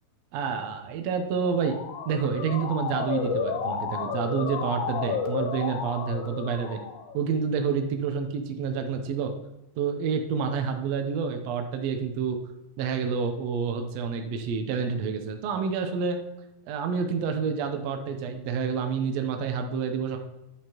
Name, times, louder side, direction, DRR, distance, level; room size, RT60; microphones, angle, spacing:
voice 1, 0.3-1.8 2.1-6.8 7.1-9.3 9.8-12.4 12.8-16.2 16.7-20.2, right 6 dB, 70° right, 5 dB, 1.7 m, -28 dB
Motor vehicle (road) / Siren, 1.3-7.2, left 6 dB, 75° left, 2.3 m, -32 dB
8.6 x 7.6 x 2.9 m, 0.94 s
omnidirectional pair, 3.5 m